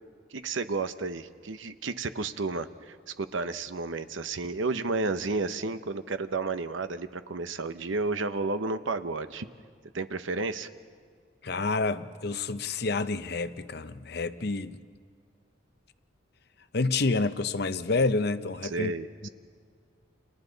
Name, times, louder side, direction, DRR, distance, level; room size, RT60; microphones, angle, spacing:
voice 1, 0.3-9.5 9.9-10.7 18.6-19.1, right 3 dB, 80° right, 0.9 m, -32 dB
voice 2, 11.4-14.8 16.7-18.9 19.2-19.3, left 3 dB, 55° left, 0.7 m, -28 dB
30.0 x 28.5 x 4.0 m
head